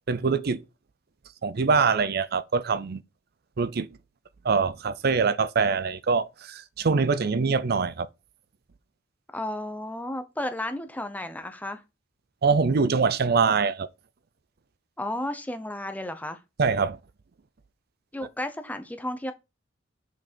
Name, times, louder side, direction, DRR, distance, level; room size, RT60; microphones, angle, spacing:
voice 1, 0.1-0.6 1.4-3.0 3.6-3.9 4.4-8.1 12.4-13.9 16.6-17.0, right 5 dB, 55° right, 0.5 m, -24 dB
voice 2, 9.3-11.8 15.0-16.4 18.1-19.3, left 1 dB, 10° left, 0.8 m, -33 dB
6.0 x 5.4 x 4.4 m
head